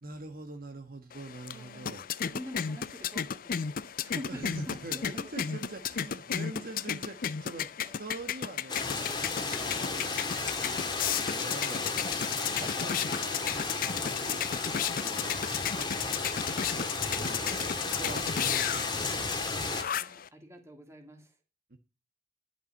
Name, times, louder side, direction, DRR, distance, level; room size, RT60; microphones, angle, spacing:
voice 1, 0.0-2.0 4.3-7.7 8.0-15.4 15.8-15.9 16.6-16.9 17.2-19.3 19.6-19.8 21.7-21.8, right 2 dB, 55° right, 6 dB, 1.4 m, -45 dB
sound 1, 1.1-20.3, left 8 dB, 50° left, 0.5 m, -34 dB
voice 2, 1.5-5.1 5.4-5.5 6.5-6.6 7.8-7.9 20.0-21.3, equal, 15° right, 3 dB, 2.5 m, -47 dB
sound 2, 8.7-19.8, left 4 dB, 25° left, 2.0 m, -33 dB
11.5 x 6.0 x 7.2 m, 0.33 s
head